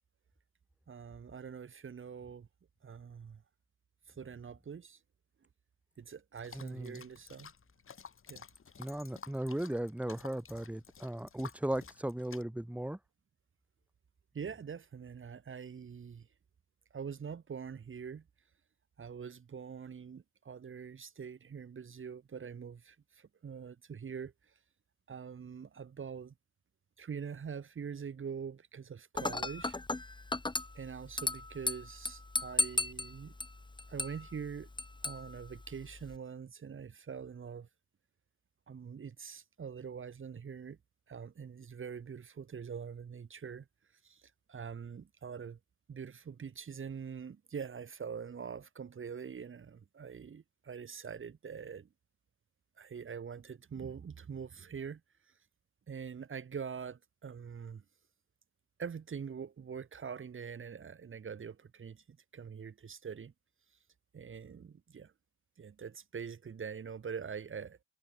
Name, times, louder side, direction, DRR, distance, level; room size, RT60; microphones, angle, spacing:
voice 1, 0.9-2.5 2.8-3.4 4.1-5.0 6.0-7.5 8.3-8.4 14.3-16.3 16.9-18.2 19.0-24.5 25.1-26.3 27.0-29.8 30.7-33.3 33.9-34.7 35.0-37.7 38.7-40.8 41.1-43.7 44.0-45.6 45.9-51.9 52.8-55.3 55.9-57.8 58.8-63.3 64.1-65.1 65.6-67.8, right 6 dB, 40° right, 2.8 m, -44 dB
sound 1, 6.3-12.4, left 6 dB, 45° left, 4.7 m, -53 dB
voice 2, 6.5-7.0 8.8-13.0, right 1 dB, 5° right, 3.3 m, -37 dB
Dishes pots and pans / Glass, 29.2-36.2, left 2 dB, 15° left, 2.6 m, -37 dB
cardioid pair, 90°, 30 cm